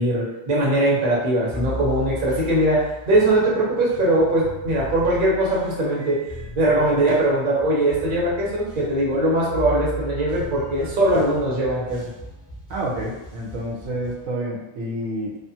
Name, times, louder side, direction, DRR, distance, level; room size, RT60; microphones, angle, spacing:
voice 1, 0.0-6.2 6.6-12.0, right 1 dB, 45° right, -5 dB, 0.9 m, -21 dB
sound 1, 1.5-14.2, right 1 dB, 5° left, 0.5 m, -37 dB
voice 2, 12.7-15.5, right 1 dB, 80° right, -2 dB, 1.0 m, -29 dB
2.4 x 2.4 x 2.7 m, 0.98 s
omnidirectional pair, 1.4 m